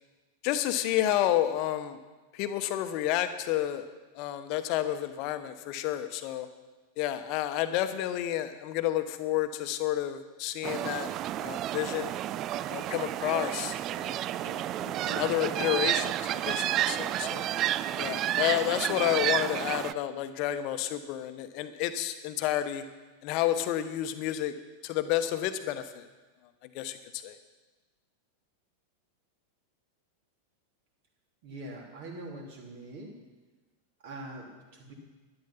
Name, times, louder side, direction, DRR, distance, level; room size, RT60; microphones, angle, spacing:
voice 1, 0.4-2.0 2.3-3.9 4.1-6.5 7.0-11.1 11.4-12.1 12.7-14.2 14.4-17.5 18.0-22.8 23.2-24.5 24.8-26.1 26.7-27.4, left 12 dB, 45° left, 10 dB, 1.0 m, -30 dB
sound 1, 10.6-19.9, right 12 dB, 35° right, 0.3 m, -31 dB
voice 2, 31.4-33.2 34.0-34.9, right 1 dB, 50° right, 1 dB, 3.0 m, -43 dB
12.0 x 11.0 x 5.8 m, 1.2 s
figure-of-eight pair, 90°, 0 cm